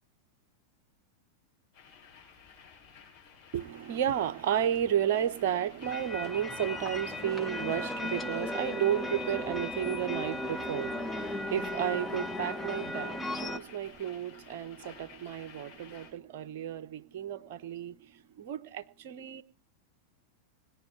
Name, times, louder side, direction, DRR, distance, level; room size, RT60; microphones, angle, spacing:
sound 1, 1.7-16.1, left 6 dB, 50° left, 7.7 m, -54 dB
voice 1, 3.5-17.9 18.4-19.4, right 10 dB, 50° right, 0.9 m, -32 dB
sound 2, 5.8-13.6, left 2 dB, 5° left, 0.8 m, -36 dB
20.5 x 10.5 x 4.6 m
figure-of-eight pair, 90°, 0 cm